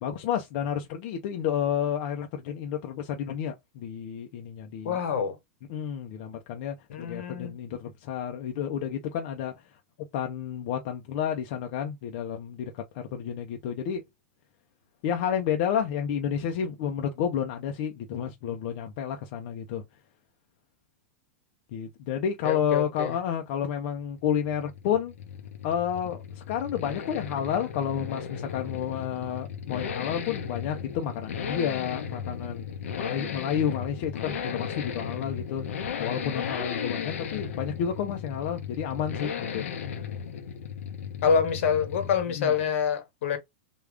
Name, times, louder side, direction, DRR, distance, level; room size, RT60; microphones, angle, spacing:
voice 1, 0.0-5.0 5.7-9.5 10.1-14.0 15.0-19.8 21.7-25.1 25.6-32.7 32.9-35.7 36.0-39.7 42.4-42.5, left 8 dB, 55° left, 0.6 m, -30 dB
voice 2, 4.8-5.4 6.9-7.5 22.4-23.1 41.2-43.4, left 6 dB, 70° left, 1.1 m, -26 dB
Accelerating revving vroom, 24.2-42.4 42.6-42.7, left 7 dB, 85° left, 0.7 m, -36 dB
3.5 x 2.3 x 3.4 m
supercardioid pair, 145°, 7 cm